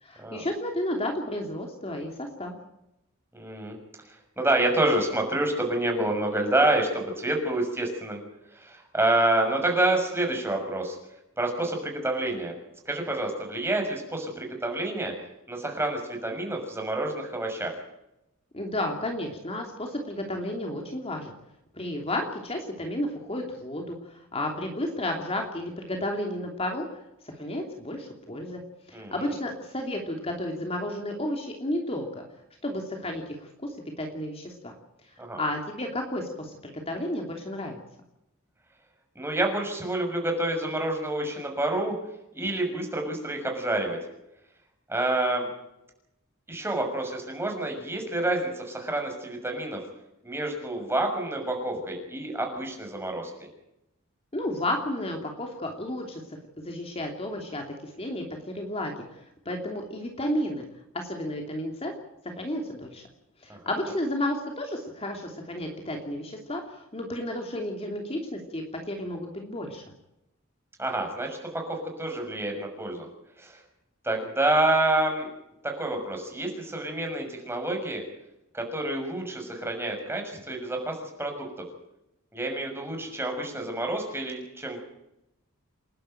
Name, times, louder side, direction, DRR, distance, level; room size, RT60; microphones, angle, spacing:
voice 1, 0.0-2.5 18.5-21.3 21.7-26.8 27.2-28.6 28.9-32.2 32.6-34.7 35.4-37.8 54.3-56.2 56.6-58.9 59.4-60.6 60.9-61.9 62.2-63.0 63.4-69.8, left 1 dB, 30° left, 2 dB, 2.9 m, -32 dB
voice 2, 3.3-3.8 4.4-8.2 8.6-11.0 11.4-12.5 12.9-15.1 15.5-17.7 28.9-29.3 35.2-35.4 39.1-41.9 42.3-44.0 44.9-45.5 46.5-49.8 50.2-53.5 63.5-63.6 70.8-71.4 71.7-73.1 73.4-73.5 74.0-75.3 75.6-78.0 78.5-81.5 82.3-84.8, right 1 dB, 10° right, 2 dB, 6.5 m, -28 dB
29.0 x 11.5 x 9.1 m, 0.87 s
head